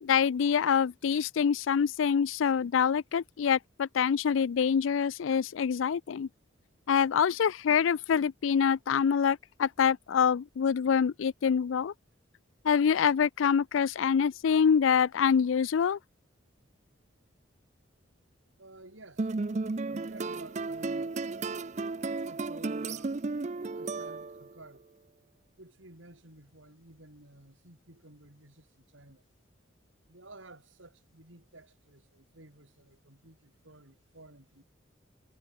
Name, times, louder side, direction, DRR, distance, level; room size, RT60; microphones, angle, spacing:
voice 1, 0.0-6.3 6.9-11.9 12.6-16.0, left 7 dB, 85° left, 0.4 m, -26 dB
voice 2, 18.6-19.3 19.9-21.2 22.1-23.3 23.7-24.8 25.6-29.2 30.1-34.6, right 2 dB, 85° right, 6.1 m, -53 dB
sound 1, 19.2-24.6, right 3 dB, 35° right, 0.5 m, -34 dB
head